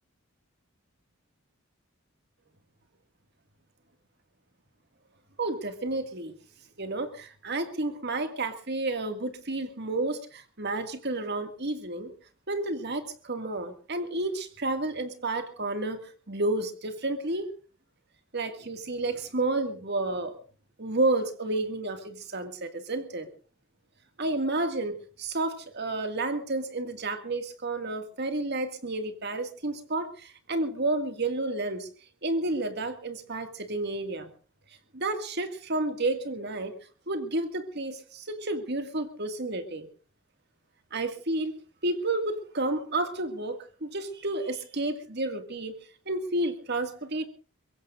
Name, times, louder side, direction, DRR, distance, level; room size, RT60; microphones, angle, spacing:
voice 1, 5.4-6.4 6.8-12.1 12.5-16.0 16.3-17.5 18.3-20.4 20.8-23.3 24.2-31.9 32.2-34.3 34.9-36.7 37.1-39.9 40.9-41.6 41.8-45.7 46.1-47.3, right 2 dB, 50° right, 8 dB, 2.1 m, -31 dB
23.0 x 22.5 x 2.6 m, 0.38 s
head